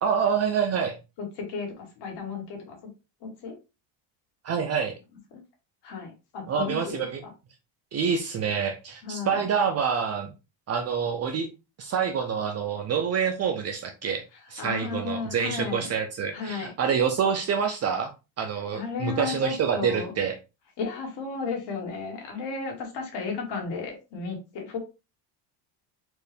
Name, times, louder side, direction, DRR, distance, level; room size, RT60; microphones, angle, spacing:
voice 1, 0.0-1.0 4.4-4.9 6.5-7.2 7.9-10.3 10.7-11.5 11.8-14.2 14.5-18.1 18.4-20.4, right 6 dB, 35° right, 0.4 m, -27 dB
voice 2, 1.2-2.8 3.2-3.5 4.6-4.7 5.3-5.4 5.8-7.3 9.0-9.4 14.6-15.9 16.3-16.7 18.7-20.1 20.8-24.8, left 5 dB, 55° left, 1.8 m, -34 dB
4.4 x 2.6 x 3.3 m
cardioid pair, 135°, 50 cm